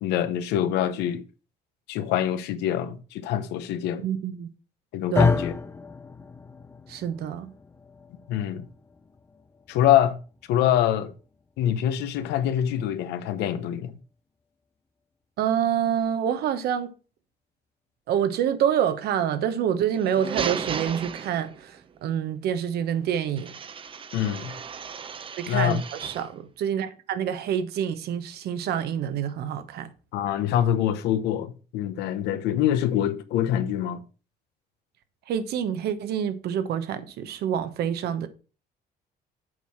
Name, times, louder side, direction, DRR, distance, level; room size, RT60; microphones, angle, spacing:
voice 1, 0.0-1.2 1.9-4.1 4.9-5.5 8.3-8.7 9.7-10.2 10.5-11.1 11.6-13.9 24.1-24.5 25.5-25.8 30.1-34.0, left 11 dB, 90° left, 1.0 m, -25 dB
voice 2, 4.0-4.5 5.1-5.4 6.9-7.5 15.4-16.9 18.1-23.5 25.4-29.9 35.3-38.3, right 9 dB, 70° right, 1.1 m, -27 dB
sound 1, 5.1-13.4, left 4 dB, 15° left, 0.6 m, -31 dB
sound 2, 19.9-21.8 23.4-26.3, right 6 dB, 30° right, 0.7 m, -35 dB
7.9 x 4.7 x 5.9 m
cardioid pair, 110°, 17 cm